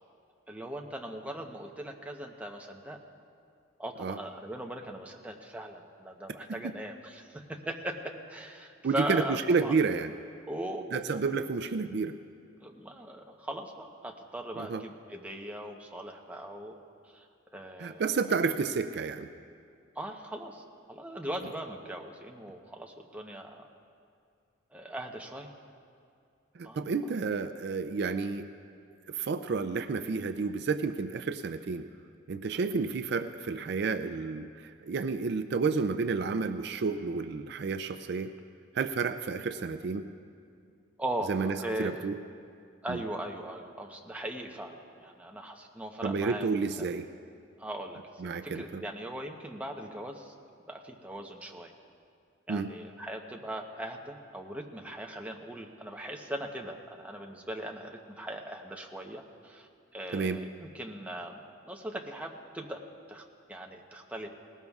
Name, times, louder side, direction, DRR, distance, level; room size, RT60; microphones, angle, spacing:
voice 1, 0.5-3.0 3.8-9.7 10.5-11.2 12.6-16.8 17.1-17.3 17.5-18.0 20.0-23.7 24.7-25.5 26.6-26.8 32.5-32.7 41.0-42.0 42.8-46.5 46.8-46.9 47.6-50.3 50.7-51.7 52.5-61.4 61.7-63.2 63.5-64.3, right 1 dB, 5° right, 1 dB, 0.8 m, -39 dB
voice 2, 8.8-10.1 10.9-12.2 14.6-14.8 17.8-19.3 26.6-28.5 29.1-31.9 32.3-38.3 38.7-40.1 41.3-42.2 42.9-43.0 46.0-47.1 48.2-48.8 52.5-52.7 60.1-60.4, right 4 dB, 55° right, 9 dB, 0.4 m, -30 dB
19.5 x 18.0 x 2.4 m, 2.3 s
head